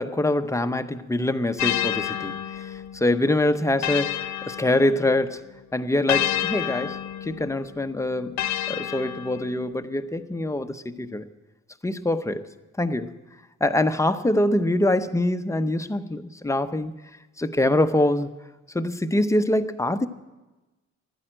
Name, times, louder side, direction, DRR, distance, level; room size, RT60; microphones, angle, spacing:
voice 1, 0.0-5.4 5.7-8.4 8.7-11.3 11.8-12.5 12.8-13.1 13.6-16.9 17.4-18.3 18.7-20.1, left 1 dB, 10° left, 9 dB, 0.7 m, -24 dB
sound 1, 1.6-5.3 6.1-9.8, left 12 dB, 65° left, 0.7 m, -30 dB
12.0 x 9.8 x 8.8 m, 1.1 s
cardioid pair, 90°, 30 cm